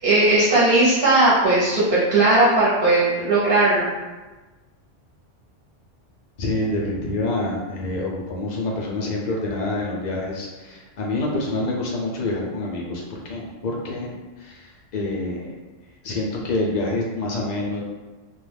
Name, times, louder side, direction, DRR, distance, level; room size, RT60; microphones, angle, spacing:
voice 1, 0.0-3.9, right 2 dB, 55° right, -9 dB, 0.9 m, -17 dB
voice 2, 6.4-15.5 16.0-17.8, left 2 dB, 65° left, -2 dB, 0.4 m, -27 dB
2.3 x 2.2 x 3.2 m, 1.2 s
omnidirectional pair, 1.3 m